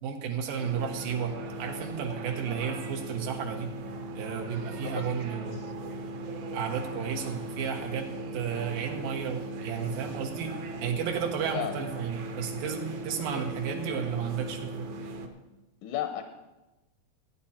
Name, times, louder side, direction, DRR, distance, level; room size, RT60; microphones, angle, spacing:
voice 1, 0.0-3.7 4.2-5.6 6.5-8.1 8.3-10.5 10.8-14.8, right 7 dB, 80° right, 1 dB, 3.0 m, -33 dB
sound 1, 0.6-15.3, right 2 dB, 65° right, 2.3 m, -38 dB
voice 2, 4.8-5.1 5.6-5.7 11.5-11.8 13.3-13.4 15.8-16.2, left 10 dB, 80° left, 6 dB, 2.2 m, -34 dB
15.5 x 9.6 x 4.3 m, 1.1 s
omnidirectional pair, 3.9 m